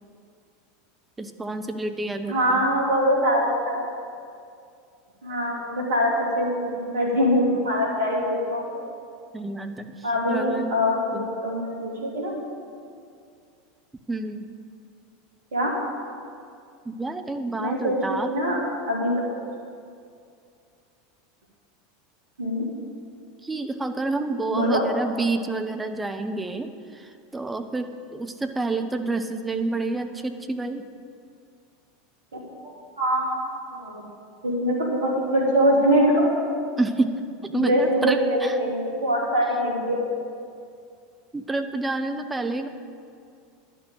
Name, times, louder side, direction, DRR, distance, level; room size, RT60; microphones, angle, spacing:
voice 1, 1.2-2.6 9.3-10.7 11.1-11.2 14.1-14.5 16.8-18.3 23.4-30.8 36.8-38.6 41.3-42.7, right 2 dB, 10° right, 7 dB, 0.9 m, -28 dB
voice 2, 2.3-3.8 5.2-8.6 10.0-12.4 15.5-15.7 17.6-18.6 18.9-19.1 22.4-22.6 24.5-24.8 32.6-32.7 33.0-34.0 34.4-36.3 37.5-40.0, equal, 70° right, -3 dB, 3.1 m, -23 dB
11.0 x 6.4 x 8.7 m, 2.4 s
figure-of-eight pair, 80°, 0 cm